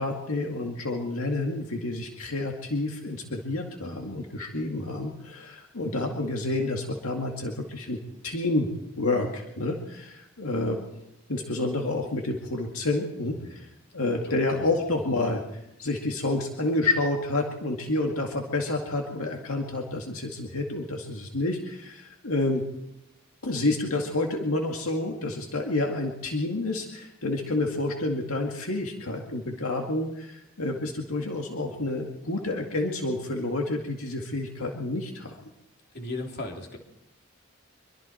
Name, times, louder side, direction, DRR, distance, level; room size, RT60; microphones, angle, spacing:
voice 1, 0.0-8.7 9.0-15.4 15.8-22.6 23.4-35.4, left 2 dB, 80° left, 1 dB, 2.2 m, -29 dB
voice 2, 14.2-15.0 35.9-36.8, left 2 dB, 50° left, 2 dB, 3.6 m, -37 dB
25.0 x 23.0 x 4.5 m, 0.85 s
head